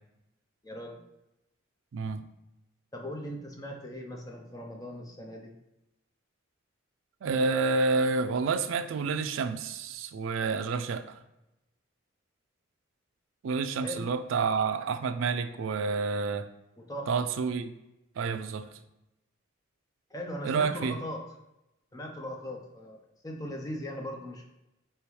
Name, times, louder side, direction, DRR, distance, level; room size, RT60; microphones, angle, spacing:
voice 1, 0.6-1.0 2.9-5.5 13.8-14.1 16.8-17.1 20.1-21.2 21.9-23.0 23.2-24.4, equal, 15° left, 1 dB, 0.6 m, -39 dB
voice 2, 1.9-2.2 7.2-11.2 13.4-16.5 17.1-17.7 18.2-18.7 20.4-20.9, right 4 dB, 70° right, 8 dB, 0.4 m, -29 dB
4.8 x 2.9 x 3.2 m, 0.92 s
head